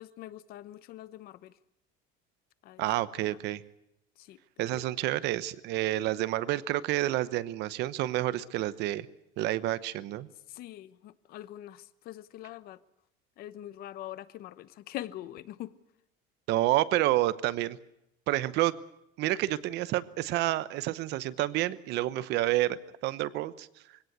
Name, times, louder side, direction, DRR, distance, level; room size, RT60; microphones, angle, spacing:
voice 1, 0.0-1.6 2.6-3.4 4.2-4.9 10.3-12.8 13.4-15.8, left 13 dB, 45° left, 17 dB, 0.9 m, -44 dB
voice 2, 2.8-3.6 4.6-9.1 9.4-10.3 16.5-17.8 18.3-18.7 19.2-23.7, right 15 dB, 55° right, 16 dB, 1.0 m, -29 dB
23.0 x 17.5 x 8.1 m, 0.82 s
cardioid pair, 180°, 21 cm